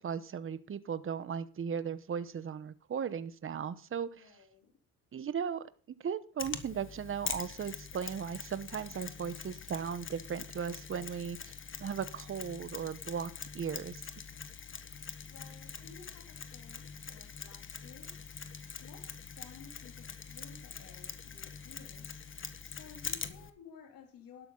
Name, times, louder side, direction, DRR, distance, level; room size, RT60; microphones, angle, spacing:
voice 1, 0.0-4.2 5.1-5.6 6.0-11.5 11.8-14.1, right 7 dB, 35° right, 1.0 m, -37 dB
voice 2, 4.2-4.7 15.2-18.2 18.8-22.2 22.6-24.5, left 6 dB, 65° left, 3.1 m, -55 dB
Mechanisms, 6.4-23.5, left 6 dB, 35° left, 1.4 m, -44 dB
12.0 x 11.5 x 3.9 m
cardioid pair, 95°, 36 cm